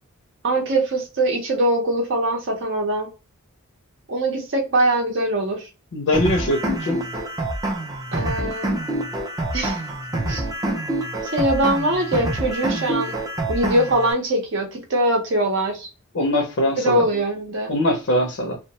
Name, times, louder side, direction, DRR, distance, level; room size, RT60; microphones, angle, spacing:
voice 1, 0.4-3.1 4.1-5.7 8.1-8.7 9.5-9.8 10.3-10.5 11.3-13.1 13.5-15.9 16.8-17.7, right 1 dB, 55° right, 0.6 m, -22 dB
voice 2, 5.9-7.0 16.1-17.1 17.7-18.6, left 1 dB, 60° left, 0.5 m, -22 dB
sound 1, 6.1-14.1, right 1 dB, 15° right, 0.4 m, -26 dB
2.3 x 2.1 x 2.7 m
head